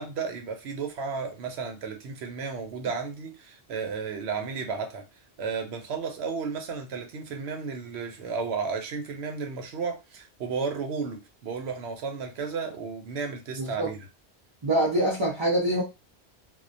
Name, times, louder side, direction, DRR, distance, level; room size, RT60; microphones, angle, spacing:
voice 1, 0.0-5.0 5.4-14.0, right 5 dB, 75° right, 5 dB, 0.9 m, -33 dB
voice 2, 13.6-13.9 14.6-15.8, right 1 dB, 30° right, -5 dB, 0.6 m, -25 dB
2.3 x 2.1 x 2.6 m, 0.25 s
omnidirectional pair, 1.1 m